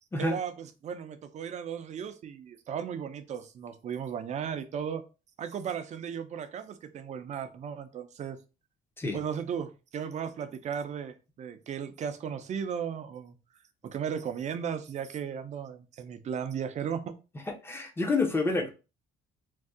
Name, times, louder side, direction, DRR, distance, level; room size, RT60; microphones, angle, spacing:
voice 1, 0.2-5.0 5.4-8.4 9.1-13.4 13.8-17.1, right 7 dB, 45° right, 0.5 m, -36 dB
voice 2, 17.6-18.7, left 3 dB, 15° left, 0.7 m, -28 dB
2.6 x 2.3 x 3.5 m
cardioid pair, 110°, 17 cm